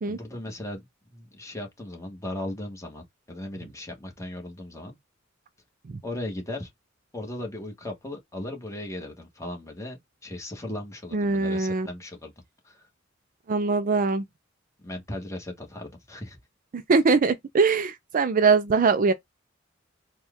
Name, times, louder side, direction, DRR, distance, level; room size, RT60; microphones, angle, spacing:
voice 1, 0.1-4.9 6.0-6.7 7.1-10.0 10.2-12.3 12.6-12.9 14.8-16.4, left 1 dB, 15° left, 1.3 m, -37 dB
voice 2, 11.1-11.9 13.5-14.2 16.7-19.1, right 4 dB, 45° right, 0.4 m, -22 dB
4.3 x 2.3 x 3.5 m
head